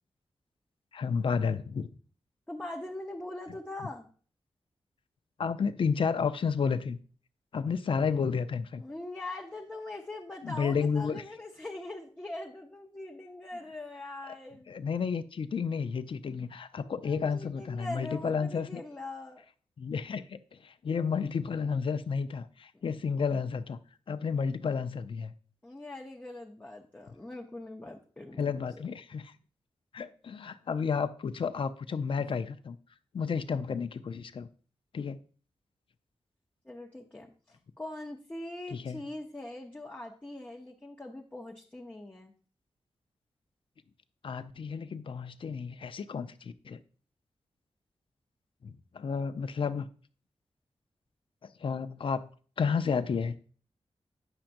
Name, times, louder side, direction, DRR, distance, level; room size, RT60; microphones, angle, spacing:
voice 1, 0.9-1.9 5.4-7.0 7.5-8.8 10.4-11.2 14.3-14.4 14.7-18.8 19.8-23.8 24.1-25.3 28.4-29.3 29.9-32.8 33.1-34.5 34.9-35.2 38.7-39.0 44.2-46.8 48.6-49.9 51.6-52.3 52.6-53.4, left 6 dB, 55° left, 10 dB, 0.5 m, -31 dB
voice 2, 2.5-4.1 8.8-14.7 16.8-19.4 25.6-28.8 36.6-42.3, left 2 dB, 15° left, 0 dB, 0.7 m, -42 dB
8.8 x 5.8 x 2.6 m, 0.41 s
wide cardioid pair, 80°, 11 cm